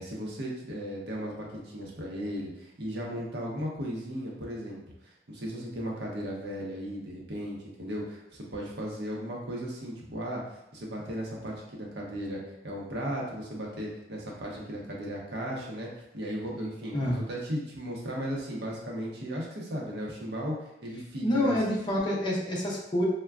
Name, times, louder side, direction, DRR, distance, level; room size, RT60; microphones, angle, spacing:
voice 1, 0.0-10.4 10.7-20.5 20.8-21.6, equal, 65° right, -2 dB, 0.7 m, -36 dB
voice 2, 21.2-23.0, left 1 dB, 25° left, -3 dB, 0.6 m, -27 dB
3.4 x 2.1 x 2.3 m, 0.84 s
head